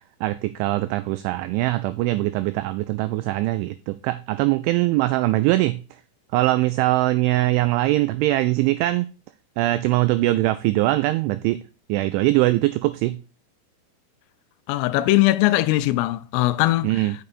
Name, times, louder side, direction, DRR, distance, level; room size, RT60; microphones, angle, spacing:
voice 1, 0.0-5.8 6.3-9.1 9.6-11.6 11.9-13.2 16.8-17.1, right 17 dB, 90° right, 2.7 m, -22 dB
voice 2, 14.7-17.1, left 17 dB, 85° left, 3.1 m, -20 dB
6.9 x 6.4 x 4.2 m
omnidirectional pair, 5.9 m